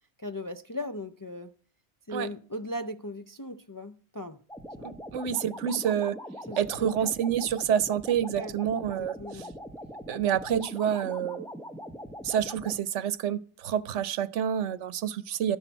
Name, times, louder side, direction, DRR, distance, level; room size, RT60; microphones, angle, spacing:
voice 1, 0.2-1.5 2.1-4.4 4.8-4.9 6.5-7.1 8.3-8.6 9.0-9.5, left 1 dB, 30° left, 0.3 m, -38 dB
sound 1, 4.5-12.8, equal, 5° left, 0.8 m, -42 dB
voice 2, 4.8-6.2 6.6-9.5 10.1-11.5 12.2-15.6, right 9 dB, 85° right, 1.0 m, -28 dB
12.5 x 10.0 x 4.5 m
omnidirectional pair, 1.2 m